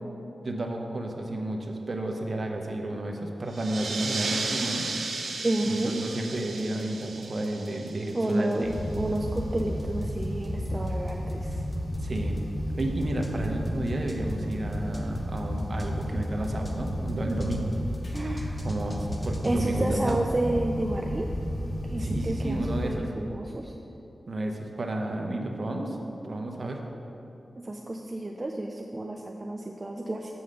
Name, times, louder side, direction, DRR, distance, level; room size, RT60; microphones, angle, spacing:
voice 1, 0.4-4.9 5.6-8.7 11.9-12.4 12.8-17.7 18.6-20.2 22.0-23.1 24.3-26.0 26.2-26.8, right 1 dB, 50° right, 2 dB, 0.8 m, -32 dB
sound 1, 3.5-8.7, right 3 dB, 85° right, 0.8 m, -34 dB
voice 2, 5.4-6.0 8.1-11.6 18.1-18.6 19.4-21.3 21.9-23.7 27.6-30.3, right 1 dB, 25° right, 1 dB, 0.4 m, -30 dB
sound 2, 6.4-12.4 12.8-20.4, equal, 20° left, 0.7 m, -49 dB
sound 3, 8.6-22.9, equal, 65° left, 1.7 m, -32 dB
6.7 x 5.6 x 6.5 m, 2.9 s
wide cardioid pair, 110°, 0 cm